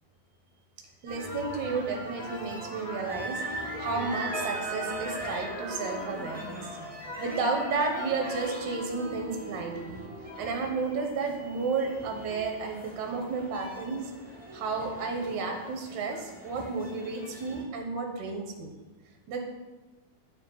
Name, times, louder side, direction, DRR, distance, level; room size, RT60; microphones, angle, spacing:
voice 1, 1.0-6.7 7.2-10.0 10.4-14.1 14.5-18.7 19.3-19.4, right 4 dB, 65° right, 2 dB, 2.2 m, -32 dB
sound 1, 1.1-17.6, equal, 5° right, 1.1 m, -40 dB
sound 2, 4.0-12.9 13.4-13.6 13.9-14.2, equal, 40° right, 1.5 m, -44 dB
10.0 x 8.9 x 3.9 m, 1.2 s
omnidirectional pair, 4.2 m